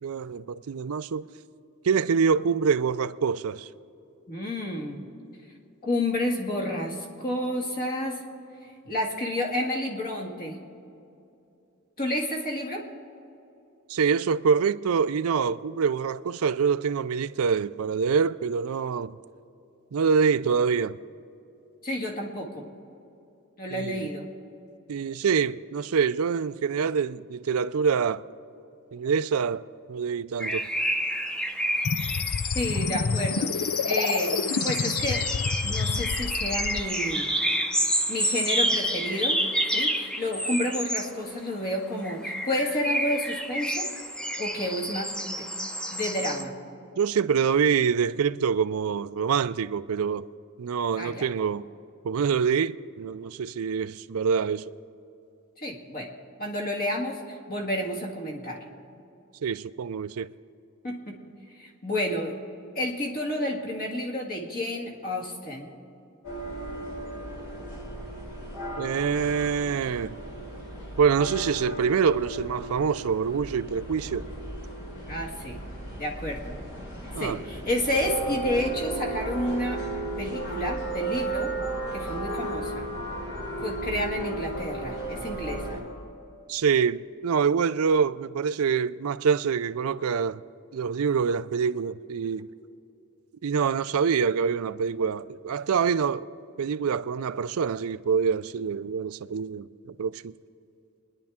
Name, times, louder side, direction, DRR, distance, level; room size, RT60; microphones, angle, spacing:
voice 1, 0.0-1.3 1.8-3.7 13.9-19.2 19.9-21.0 23.7-24.1 24.9-28.2 28.9-30.7 47.0-50.3 50.6-51.6 52.0-54.6 59.4-60.3 68.8-70.2 71.0-74.2 77.1-77.4 86.5-90.4 90.7-92.5 93.4-96.3 96.6-100.3, right 6 dB, 80° right, 0.4 m, -25 dB
voice 2, 4.3-5.0 5.8-8.2 8.9-10.6 12.0-12.9 21.8-22.7 23.6-24.3 32.5-35.2 35.6-37.3 38.1-39.4 39.7-43.9 44.4-45.4 45.9-46.5 50.9-51.3 55.6-56.1 56.4-58.6 60.8-61.2 61.6-62.4 62.8-65.7 75.1-75.6 76.0-76.6 77.2-79.8 80.2-81.5 81.9-82.9 83.6-85.8, left 1 dB, 45° left, 2.1 m, -30 dB
sound 1, 30.4-41.1 42.0-46.4, right 1 dB, 5° left, 0.8 m, -29 dB
sound 2, 31.8-36.8, left 5 dB, 85° left, 0.6 m, -28 dB
sound 3, 66.2-85.8, right 2 dB, 65° left, 4.0 m, -34 dB
27.5 x 10.5 x 3.6 m
head